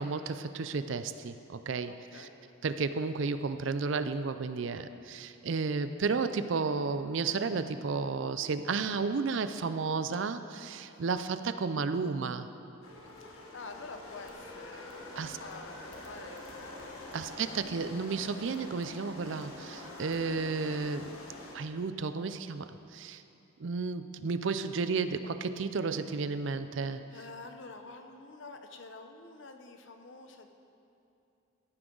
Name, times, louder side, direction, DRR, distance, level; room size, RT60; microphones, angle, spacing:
voice 1, 0.0-2.3 2.6-12.5 15.2-15.4 17.1-21.2 21.5-23.2 23.6-27.0, right 4 dB, 60° right, 11 dB, 0.4 m, -32 dB
voice 2, 1.9-2.3 13.2-17.7 27.1-30.5, left 3 dB, 60° left, 6 dB, 0.8 m, -48 dB
sound 1, 12.8-21.6, left 1 dB, 80° left, 1.6 m, -46 dB
14.5 x 9.6 x 3.9 m, 2.8 s
head